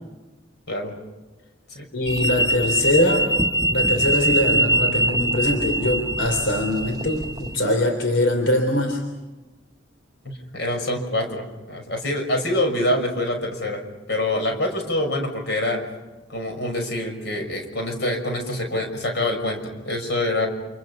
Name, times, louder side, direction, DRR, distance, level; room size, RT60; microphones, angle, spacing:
voice 1, 1.9-3.3 3.7-9.0, left 1 dB, 85° left, 4 dB, 3.5 m, -22 dB
sound 1, 2.1-7.6, right 2 dB, 20° right, 1.0 m, -23 dB
voice 2, 10.2-13.8 14.1-15.8 16.3-20.5, left 1 dB, 60° left, 4 dB, 6.1 m, -25 dB
30.0 x 28.0 x 5.6 m, 1.2 s
head